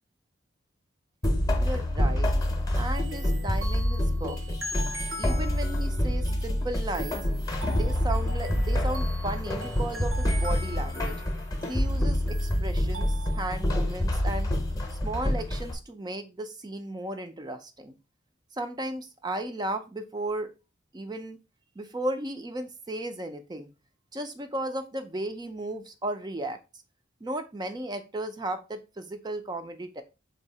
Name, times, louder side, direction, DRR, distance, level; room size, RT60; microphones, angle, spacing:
sound 1, 1.2-15.7, left 1 dB, 20° left, 0.7 m, -27 dB
voice 1, 1.6-2.3 2.8-4.4 5.2-7.2 7.7-11.1 11.7-14.5 14.9-18.0 18.6-20.5 20.9-21.4 21.8-23.7 24.1-26.6 27.2-30.0, right 1 dB, 20° right, 7 dB, 0.4 m, -35 dB
sound 2, 2.9-13.6, right 1 dB, 85° right, 1.6 m, -42 dB
4.0 x 2.7 x 4.0 m, 0.29 s
head